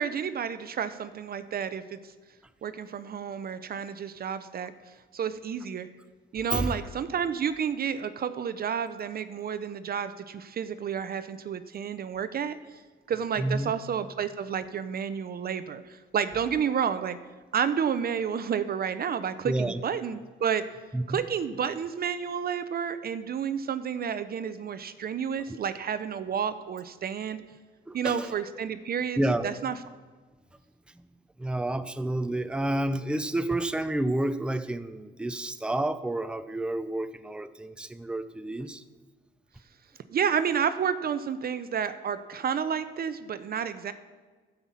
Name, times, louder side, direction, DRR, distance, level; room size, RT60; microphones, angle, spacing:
voice 1, 0.0-2.0 2.6-4.7 5.1-5.9 6.3-12.6 13.1-17.2 17.5-20.6 21.1-27.4 27.9-29.8 40.1-43.9, right 7 dB, 50° right, 12 dB, 0.6 m, -30 dB
voice 2, 13.4-13.7 19.4-19.8 20.9-21.2 25.5-25.6 27.9-28.3 29.2-29.6 31.4-38.8, right 1 dB, 5° right, 11 dB, 0.6 m, -30 dB
12.5 x 5.7 x 7.4 m, 1.4 s
cardioid pair, 90°, 20 cm